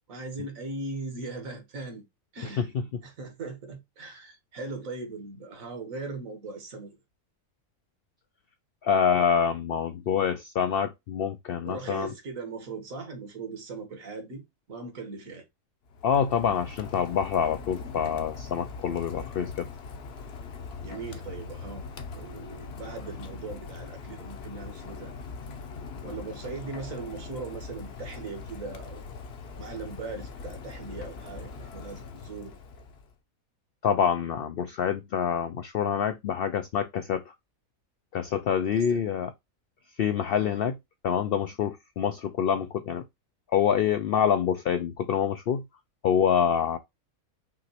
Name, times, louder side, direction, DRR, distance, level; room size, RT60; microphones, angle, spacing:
voice 1, 0.1-2.0 2.3-2.7 3.0-7.0 11.6-15.4 20.8-21.9 22.1-25.1 26.0-29.0 29.6-32.5 38.7-39.0 40.3-40.6, right 3 dB, 65° right, 1.7 m, -39 dB
voice 2, 8.8-12.1 16.0-19.7 33.8-37.3 38.1-39.3 40.0-40.8 41.0-43.0 43.5-45.6 46.0-46.8, left 8 dB, 75° left, 0.5 m, -26 dB
Rain, 15.9-33.1, left 4 dB, 55° left, 0.9 m, -41 dB
6.0 x 3.0 x 2.8 m
omnidirectional pair, 1.5 m